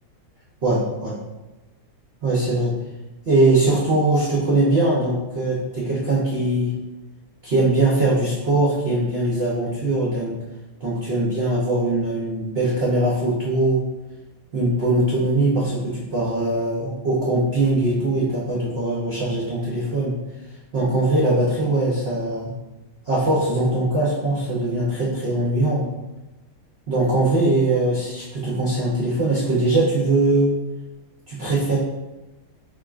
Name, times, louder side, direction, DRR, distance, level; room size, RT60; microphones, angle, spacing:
voice 1, 0.6-1.2 2.2-2.7 3.3-6.7 7.4-10.3 10.8-13.8 14.5-20.1 20.7-22.5 23.1-25.8 26.9-30.5 31.3-31.8, right 2 dB, 80° right, -6 dB, 0.5 m, -21 dB
4.4 x 3.6 x 2.4 m, 1.1 s
omnidirectional pair, 2.2 m